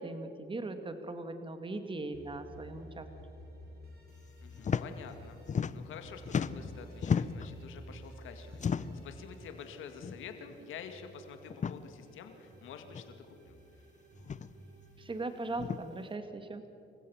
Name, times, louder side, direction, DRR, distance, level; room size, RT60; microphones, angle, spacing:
voice 1, 0.0-3.1 15.0-16.6, right 2 dB, 25° right, 8 dB, 1.9 m, -39 dB
sound 1, 2.1-5.6 6.0-11.5 12.0-15.8, right 1 dB, 50° right, 4.8 m, -53 dB
voice 2, 4.4-5.4 5.7-13.5, left 7 dB, 80° left, 6 dB, 2.2 m, -48 dB
sound 2, 4.6-4.9 5.1-6.0 6.2-7.5 8.5-9.1 10.0-10.2 10.5-10.6 11.5-11.8 12.9-13.0 14.2-14.5 15.6-15.8, left 6 dB, 40° left, 0.7 m, -33 dB
27.0 x 15.5 x 7.1 m, 2.6 s
cardioid pair, 90°, 20 cm